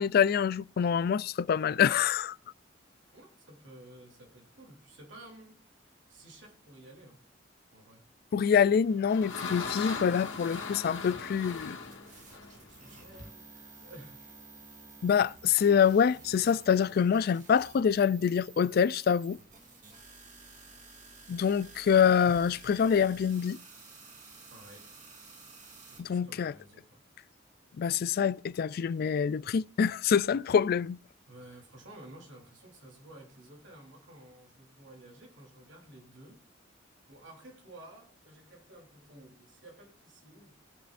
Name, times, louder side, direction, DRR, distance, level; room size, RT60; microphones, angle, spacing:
voice 1, 0.0-2.3 8.3-11.8 15.0-19.4 21.3-23.6 26.0-26.5 27.8-31.0, left 7 dB, 55° left, 0.3 m, -26 dB
voice 2, 3.1-7.2 7.7-8.1 10.1-11.1 11.5-14.2 24.5-24.9 25.9-27.0 31.3-36.4 37.1-40.5, right 1 dB, 75° right, 3.1 m, -53 dB
sound 1, 8.6-13.3, left 4 dB, 85° left, 2.0 m, -39 dB
sound 2, 11.9-26.0, right 4 dB, 40° right, 2.7 m, -52 dB
20.0 x 6.8 x 2.5 m
head